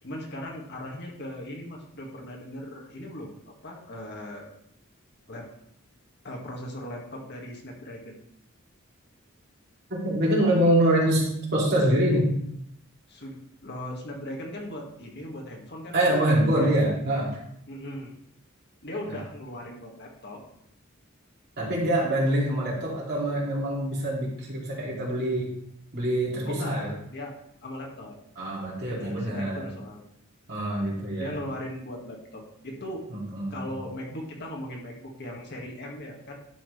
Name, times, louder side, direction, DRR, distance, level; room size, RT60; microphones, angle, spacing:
voice 1, 0.0-4.5 5.3-5.5 6.2-8.2 13.1-16.1 16.5-16.7 17.7-18.1 18.8-20.4 26.4-27.3 27.6-28.2 28.9-30.0 31.2-33.0 33.5-36.3, left 1 dB, 55° left, 0 dB, 1.9 m, -38 dB
voice 2, 9.9-12.4 15.9-17.3 19.0-19.1 21.6-25.5 25.9-26.9 28.4-29.7 30.5-31.3 33.1-33.7, right 1 dB, 55° right, -4 dB, 2.9 m, -25 dB
11.0 x 5.9 x 3.3 m, 0.72 s
head